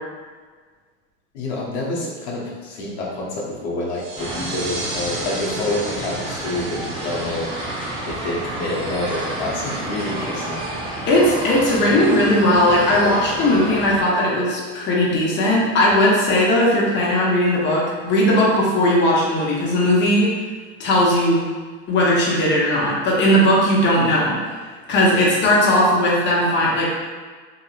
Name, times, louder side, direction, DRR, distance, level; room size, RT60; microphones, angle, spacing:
voice 1, 1.3-7.7 8.1-10.7, left 2 dB, 85° left, -4 dB, 0.8 m, -27 dB
sound 1, 3.9-9.2, right 2 dB, 65° right, 1.0 m, -35 dB
sound 2, 4.2-14.0, right 1 dB, 15° right, 0.7 m, -30 dB
voice 2, 11.1-20.3 20.8-21.5 21.9-24.4 24.9-26.8, left 1 dB, 35° left, -4 dB, 0.8 m, -17 dB
2.8 x 2.7 x 2.4 m, 1.5 s
supercardioid pair, 115°, 32 cm